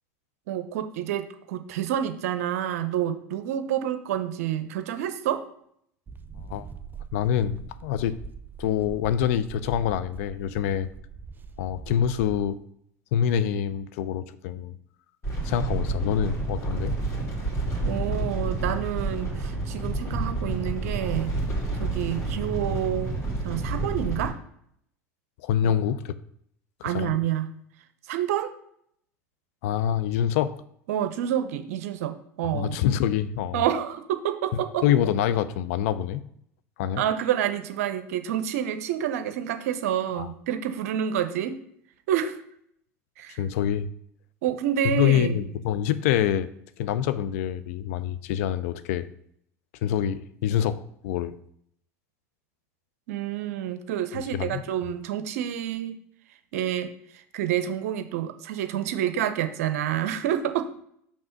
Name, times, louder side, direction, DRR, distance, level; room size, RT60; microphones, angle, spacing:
voice 1, 0.5-5.4 17.8-21.3 21.8-23.1 23.4-24.4 25.6-25.8 26.8-27.5 28.1-28.5 30.9-32.8 33.5-34.9 37.0-41.6 42.1-42.4 43.2-43.4 44.4-45.4 53.1-55.9 56.5-60.7, right 10 dB, 70° right, 10 dB, 0.6 m, -28 dB
sound 1, 6.1-12.5, right 6 dB, 25° right, 0.5 m, -42 dB
voice 2, 7.1-8.2 8.6-10.9 11.6-12.6 13.1-14.8 15.4-16.9 25.4-26.1 26.8-27.1 29.6-30.6 32.5-33.6 34.8-36.2 36.8-37.0 40.1-40.3 43.4-43.9 44.8-46.5 46.8-49.1 49.8-51.4 54.3-54.6, left 10 dB, 70° left, 13 dB, 0.4 m, -26 dB
sound 2, 15.2-24.3, right 2 dB, 35° left, 2.5 m, -29 dB
5.4 x 3.4 x 5.7 m, 0.70 s
hypercardioid pair, 75°, 8 cm